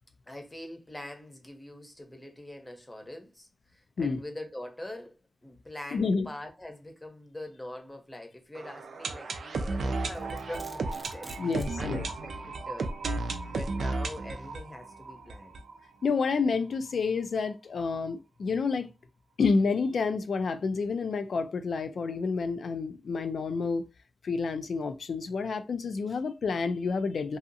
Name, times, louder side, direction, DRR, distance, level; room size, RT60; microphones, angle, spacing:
voice 1, 0.3-15.6 26.1-26.2, left 1 dB, 15° left, 0.7 m, -44 dB
voice 2, 5.9-6.3 11.4-12.0 16.0-18.9 19.4-23.9 24.2-27.4, left 4 dB, 75° left, 0.3 m, -29 dB
sound 1, 8.5-16.3 16.6-16.7 16.9-17.0 17.5-17.6, right 3 dB, 85° right, 0.4 m, -34 dB
Domestic sounds home sounds, 9.9-11.8, right 1 dB, 20° right, 0.5 m, -49 dB
2.7 x 2.4 x 2.6 m
cardioid pair, 75°, 0 cm